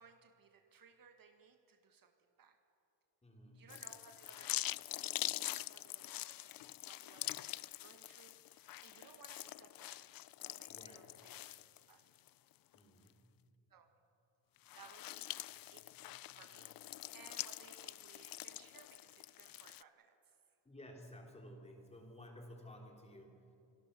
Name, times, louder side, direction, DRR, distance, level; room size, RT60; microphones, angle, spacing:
voice 1, 0.0-2.6 3.5-10.1 10.4-11.6 11.9-12.0 13.7-13.9 14.7-15.4 15.7-15.9 16.3-16.7 17.1-20.3, right 6 dB, 45° right, 6 dB, 1.6 m, -62 dB
voice 2, 3.2-3.6 10.7-11.0 12.7-13.3 20.7-23.6, equal, 15° left, 1 dB, 3.6 m, -55 dB
sound 1, 3.7-12.3 12.7-12.8 14.6-19.8, left 15 dB, 50° left, 0.5 m, -45 dB
26.5 x 23.0 x 6.9 m, 2.7 s
cardioid pair, 155°, 45 cm